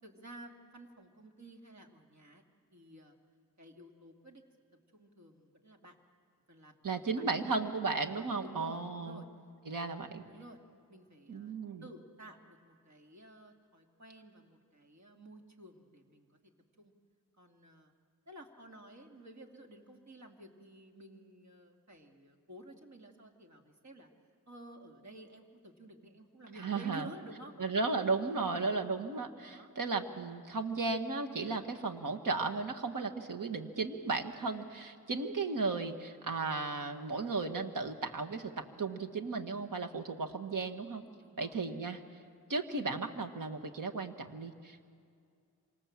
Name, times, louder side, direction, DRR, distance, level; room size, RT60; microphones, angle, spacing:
voice 1, 0.0-2.4 2.7-3.2 3.6-4.4 4.9-6.0 6.5-7.6 8.4-9.3 9.7-9.8 10.3-10.6 10.9-11.5 11.8-16.5 16.8-16.9 17.4-17.9 18.3-24.1 24.5-27.6 28.4-28.7 29.5-29.7 41.2-41.6, right 1 dB, 55° right, 2 dB, 2.7 m, -52 dB
voice 2, 6.8-9.2 9.7-10.2 11.3-11.9 26.6-27.1 27.6-41.0 41.4-42.0 42.5-44.9, right 3 dB, 70° right, 4 dB, 1.8 m, -35 dB
27.0 x 25.5 x 7.5 m, 2.3 s
wide cardioid pair, 80°, 34 cm